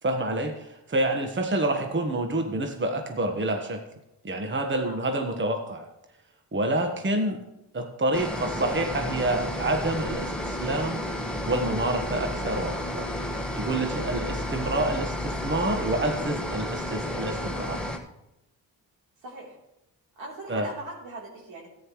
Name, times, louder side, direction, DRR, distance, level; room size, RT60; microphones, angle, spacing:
voice 1, 0.0-3.8 4.2-5.9 6.5-7.4 7.7-11.0 11.5-13.1 13.3-17.8 20.5-20.7, right 1 dB, 25° right, 4 dB, 1.3 m, -28 dB
sound 1, 8.1-18.0, left 1 dB, ahead, 1.5 m, -32 dB
voice 2, 19.2-19.6 20.2-21.7, right 1 dB, 80° right, -3 dB, 3.6 m, -40 dB
14.0 x 9.7 x 3.2 m, 0.88 s
supercardioid pair, 55°, 45 cm